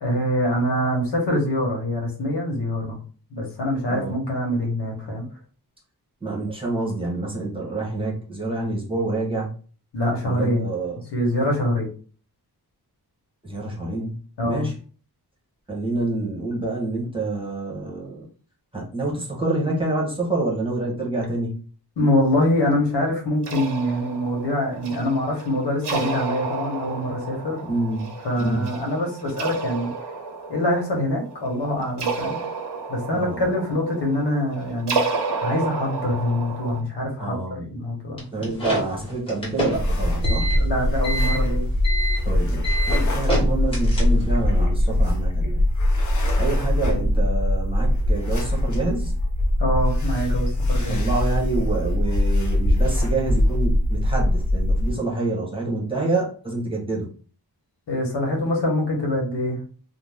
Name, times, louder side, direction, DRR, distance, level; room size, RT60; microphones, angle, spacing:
voice 1, 0.0-3.0 3.3-5.3 9.9-10.6 11.1-11.9 14.4-14.7 22.0-27.6 28.2-29.9 30.5-32.4 32.9-35.0 35.4-37.4 37.7-38.5 40.5-41.7 46.8-47.0 49.6-51.0 57.9-59.6, left 1 dB, 85° left, 0 dB, 1.0 m, -24 dB
voice 2, 6.2-9.5 10.2-11.0 13.4-14.2 14.5-14.7 15.7-18.3 18.7-21.6 27.7-28.1 28.4-28.7 33.1-33.4 37.2-37.7 38.3-40.5 42.2-45.6 46.4-49.1 50.9-57.1, right 2 dB, 15° right, -3 dB, 0.7 m, -27 dB
sound 1, 23.4-36.8, right 4 dB, 90° right, 0.8 m, -31 dB
sound 2, 38.2-44.4, equal, 15° left, 0.9 m, -27 dB
sound 3, 39.7-54.9, left 1 dB, 45° left, 0.6 m, -21 dB
2.6 x 2.0 x 3.2 m, 0.40 s
wide cardioid pair, 175°, 40 cm